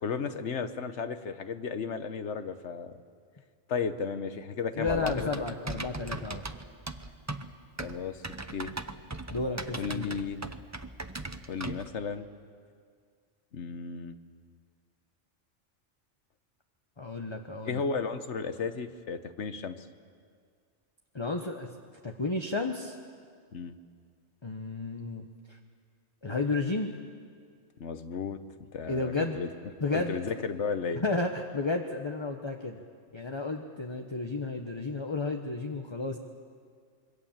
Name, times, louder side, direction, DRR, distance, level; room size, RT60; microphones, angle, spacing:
voice 1, 0.0-2.9 3.7-5.3 7.8-8.7 9.7-10.4 11.5-12.3 13.5-14.1 17.7-19.9 23.5-23.8 27.8-28.4 28.7-29.5 29.9-31.0, left 5 dB, 70° left, 10 dB, 1.4 m, -34 dB
voice 2, 4.8-6.4 9.3-10.2 17.0-17.8 21.1-21.7 22.0-23.0 24.4-25.6 26.2-26.9 28.9-29.4 29.8-30.1 31.0-32.8 33.1-36.2, left 3 dB, 25° left, 4 dB, 1.1 m, -32 dB
Typing, 4.9-11.9, right 2 dB, 20° right, 0.6 m, -39 dB
26.0 x 22.5 x 7.4 m, 2.1 s
omnidirectional pair, 1.2 m